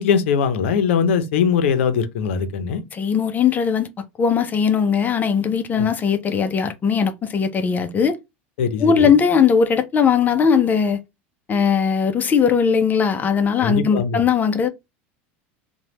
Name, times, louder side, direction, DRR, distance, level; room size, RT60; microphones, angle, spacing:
voice 1, 0.0-2.8 5.7-5.9 8.6-9.1 13.6-14.2, left 6 dB, 80° left, 0.6 m, -21 dB
voice 2, 2.9-8.2 8.8-11.0 11.5-14.7, left 6 dB, 25° left, 0.5 m, -19 dB
3.1 x 2.2 x 2.8 m
supercardioid pair, 110°, 7 cm